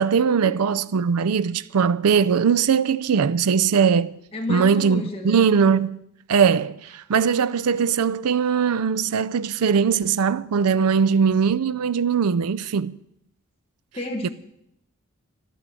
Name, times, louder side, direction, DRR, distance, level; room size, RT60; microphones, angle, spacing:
voice 1, 0.0-4.2 4.5-6.0 6.3-13.0 14.2-14.3, right 6 dB, 90° right, 0.5 m, -20 dB
voice 2, 4.3-5.5 13.9-14.3, left 1 dB, 25° left, 1.4 m, -31 dB
12.5 x 11.0 x 7.6 m
head